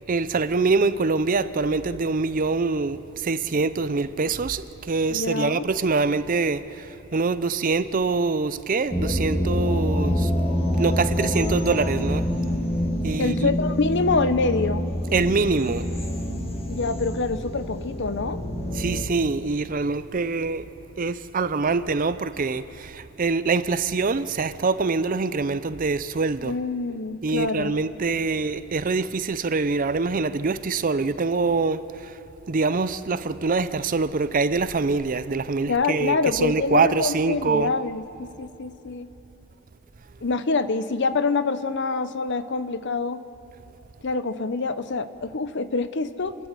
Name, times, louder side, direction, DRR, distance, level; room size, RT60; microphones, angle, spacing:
voice 1, 0.1-10.3 10.8-12.3 13.0-13.5 15.1-15.9 18.7-20.6 21.0-26.6 27.2-32.1 32.5-37.7, right 4 dB, 40° right, 0.5 m, -24 dB
voice 2, 5.1-5.7 13.2-14.8 16.7-18.4 26.4-27.8 35.7-39.1 40.2-43.2 44.0-46.3, left 3 dB, 55° left, 0.7 m, -26 dB
sound 1, 8.9-19.0, equal, 25° left, 1.7 m, -26 dB
29.0 x 11.0 x 8.3 m
head